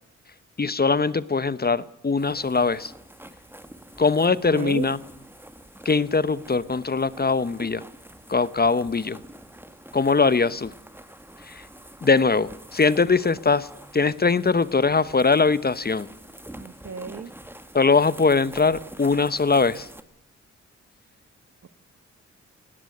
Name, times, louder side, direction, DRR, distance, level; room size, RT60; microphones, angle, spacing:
voice 1, 0.6-2.9 4.0-5.0 5.8-7.8 8.3-9.2 9.9-10.7 11.5-11.6 12.0-13.7 13.9-16.1 17.7-19.9, left 4 dB, 30° left, 17 dB, 0.9 m, -21 dB
sound 1, 2.2-20.0, right 1 dB, 5° right, 1.9 m, -46 dB
voice 2, 4.3-4.9 16.6-17.3 21.6-21.7, right 6 dB, 55° right, 14 dB, 1.2 m, -33 dB
18.5 x 17.0 x 8.5 m, 0.78 s
cardioid pair, 55°, 30 cm